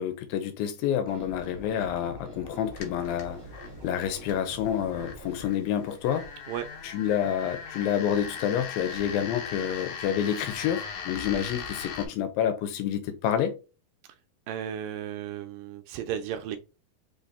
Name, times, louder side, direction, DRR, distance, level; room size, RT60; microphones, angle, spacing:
voice 1, 0.0-3.4 3.8-6.3 6.8-13.5, left 9 dB, 85° left, 2.5 m, -28 dB
sound 1, 1.1-5.5, right 2 dB, 65° right, 0.8 m, -45 dB
sound 2, 2.7-12.1, left 6 dB, 65° left, 2.0 m, -40 dB
voice 2, 14.5-16.6, right 10 dB, 80° right, 2.0 m, -34 dB
5.4 x 2.7 x 3.5 m
omnidirectional pair, 4.2 m